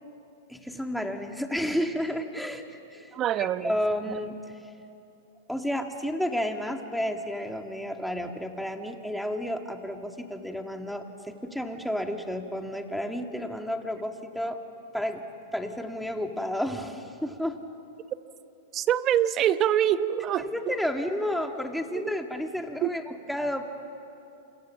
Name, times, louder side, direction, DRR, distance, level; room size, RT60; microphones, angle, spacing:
voice 1, 0.5-3.1 3.4-4.4 5.5-14.6 14.9-15.2 15.5-17.6 20.4-23.6, equal, ahead, 2.1 m, -31 dB
voice 2, 3.1-3.7 18.7-20.5 22.8-22.9, right 11 dB, 35° right, 1.0 m, -24 dB
28.5 x 26.5 x 7.4 m
hypercardioid pair, 125°, 0 cm